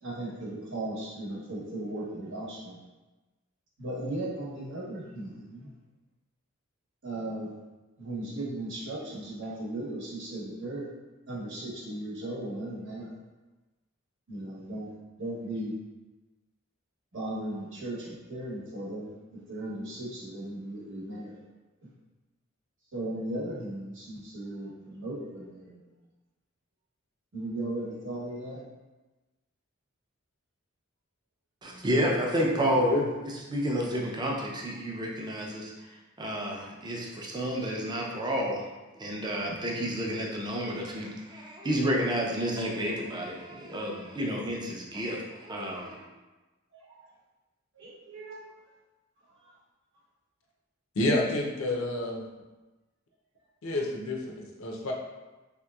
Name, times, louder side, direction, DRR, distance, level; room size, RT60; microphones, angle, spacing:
voice 1, 0.0-2.8 3.8-5.7 7.0-7.5 8.0-10.9 11.3-13.1 14.3-14.9 15.2-15.7 17.1-21.4 22.9-25.8 27.3-28.6 39.5-39.6 46.9-47.1 47.8-48.4, right 1 dB, 65° right, -6 dB, 1.0 m, -37 dB
voice 2, 31.6-32.9 33.5-35.7 36.2-38.6 39.0-46.1, equal, 20° right, -2 dB, 0.4 m, -30 dB
voice 3, 32.7-33.1 50.9-52.2 53.6-54.9, left 1 dB, 85° left, 0 dB, 0.5 m, -29 dB
3.3 x 2.8 x 2.3 m, 1.1 s
head